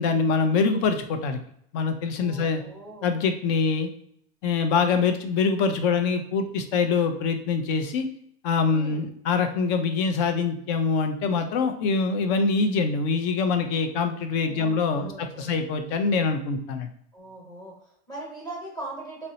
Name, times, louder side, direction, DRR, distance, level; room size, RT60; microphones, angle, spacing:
voice 1, 0.0-1.4 1.7-2.6 3.0-3.9 4.4-8.1 8.4-16.9, left 4 dB, 45° left, 7 dB, 0.5 m, -24 dB
voice 2, 2.2-3.1 8.7-9.1 14.4-15.6 17.1-19.3, right 2 dB, 10° left, -4 dB, 1.0 m, -40 dB
2.6 x 2.1 x 3.9 m, 0.68 s
supercardioid pair, 155°, 30 cm